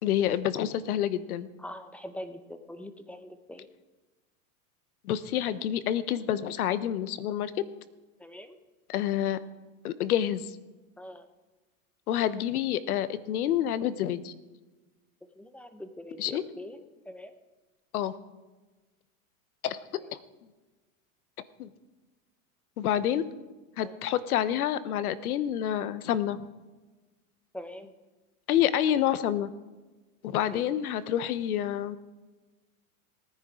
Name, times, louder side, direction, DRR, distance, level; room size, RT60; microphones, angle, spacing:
voice 1, 0.0-1.5 5.0-7.5 8.9-9.4 9.8-10.5 12.1-14.3 16.2-16.4 17.9-18.1 19.6-20.2 21.6-21.7 22.8-23.2 23.8-26.4 28.5-29.5 30.2-32.0, left 11 dB, 85° left, 16 dB, 0.9 m, -28 dB
voice 2, 1.6-3.7 8.2-8.6 11.0-11.2 15.4-16.8 17.1-17.3 23.8-24.0 27.5-27.9 30.5-30.6, left 1 dB, 5° left, 9 dB, 0.7 m, -43 dB
18.5 x 10.0 x 3.7 m, 1.2 s
supercardioid pair, 125°, 43 cm